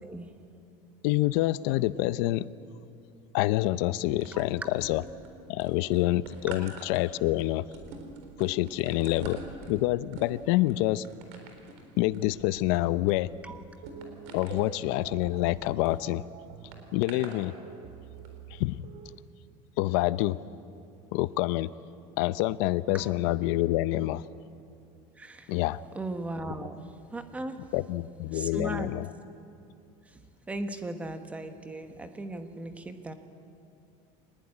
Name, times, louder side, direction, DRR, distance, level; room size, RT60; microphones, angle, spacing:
voice 1, 1.0-2.5 3.3-5.0 5.5-7.7 8.4-9.4 9.7-11.1 12.0-13.3 14.3-16.2 16.9-17.5 18.5-18.7 19.8-20.4 21.1-21.7 22.2-24.2 25.5-25.8 27.7-29.1, left 17 dB, 70° left, 16 dB, 0.7 m, -27 dB
sound 1, 4.2-5.3 5.6-16.0 16.7-17.4 18.1-18.3, right 4 dB, 75° right, 4.1 m, -46 dB
sound 2, 13.8-19.2, right 9 dB, 55° right, 1.0 m, -47 dB
voice 2, 25.2-25.5 25.9-27.6 28.3-28.9 30.1-30.2 30.5-33.1, right 2 dB, 10° right, 7 dB, 1.2 m, -37 dB
24.5 x 19.5 x 9.8 m, 2.6 s
cardioid pair, 180°, 15 cm